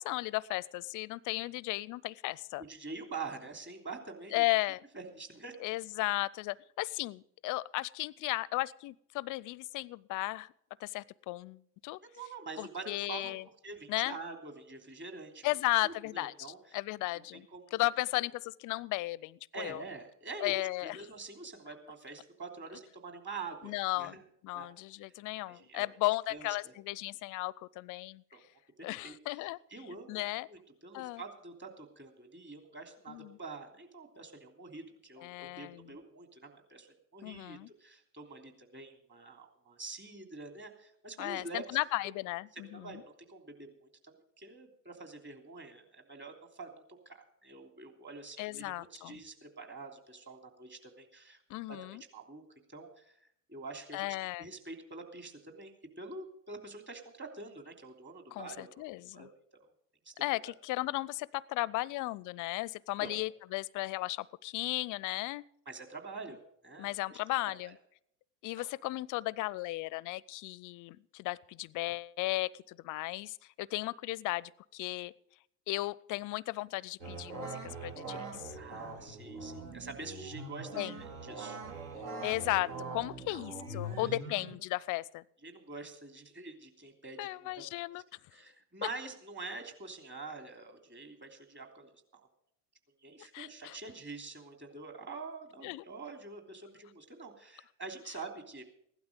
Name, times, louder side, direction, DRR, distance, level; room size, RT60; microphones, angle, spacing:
voice 1, 0.0-2.6 4.3-4.8 5.6-10.5 10.8-12.0 12.6-13.4 13.9-14.2 15.4-16.3 16.7-19.8 20.4-21.0 23.6-24.1 24.4-28.2 28.8-29.6 30.1-30.5 30.9-31.2 33.1-33.4 35.2-35.8 37.2-37.7 41.2-43.0 48.4-49.2 51.5-52.0 53.9-54.5 58.3-59.3 60.2-65.4 66.8-67.7 68.4-75.1 75.7-78.6 80.8-80.9 82.2-85.2 87.2-88.0 88.8-88.9 93.3-93.8 95.6-95.8, left 19 dB, 45° left, 24 dB, 0.4 m, -35 dB
voice 2, 2.6-4.4 4.9-5.6 12.0-13.4 13.6-15.5 15.8-16.8 17.3-17.8 19.5-24.2 24.5-24.7 25.5-25.9 26.3-26.7 28.3-28.4 28.8-29.4 29.7-41.8 42.5-51.4 51.7-52.4 52.7-59.3 60.0-60.1 60.4-60.5 63.0-63.2 65.6-67.2 67.6-67.7 68.5-68.7 78.5-81.6 83.3-83.5 85.4-87.8 88.3-92.2 93.0-98.6, right 3 dB, 25° right, 4 dB, 3.1 m, -46 dB
sound 1, 77.0-84.5, right 3 dB, 75° right, 3.3 m, -42 dB
16.0 x 12.0 x 5.2 m, 0.70 s
hypercardioid pair, 75°, 47 cm